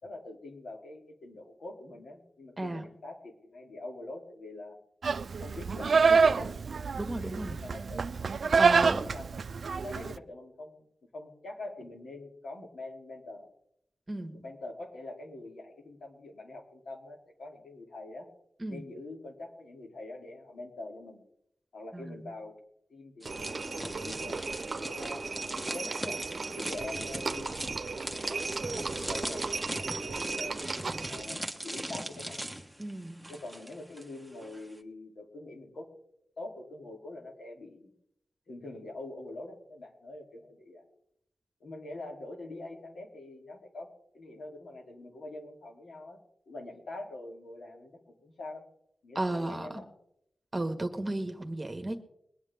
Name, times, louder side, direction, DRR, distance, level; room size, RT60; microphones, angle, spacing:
voice 1, 0.0-4.7 5.4-6.5 7.2-9.3 9.6-10.8 11.1-13.5 14.3-18.3 18.7-21.2 21.7-22.6 22.9-26.2 26.5-30.6 31.1-32.4 33.3-35.9 36.4-37.9 38.5-40.8 41.6-43.9 44.1-46.2 46.5-48.6 49.0-49.9, left 2 dB, 80° left, 1 dB, 3.2 m, -44 dB
Livestock farm animals working animals, 5.0-10.2, right 5 dB, 70° right, 0.4 m, -26 dB
voice 2, 6.9-7.6 8.6-9.0 14.1-14.4 18.6-18.8 21.9-22.2 32.8-33.3 49.1-49.8 50.5-52.0, right 1 dB, 25° right, 6 dB, 1.7 m, -34 dB
sound 1, 23.2-34.0 34.3-34.6, right 1 dB, ahead, 1.4 m, -40 dB
Livestock farm animals working animals 2, 23.2-31.4, right 4 dB, 50° right, 0.9 m, -36 dB
22.0 x 9.7 x 3.6 m, 0.76 s
wide cardioid pair, 95°, 0 cm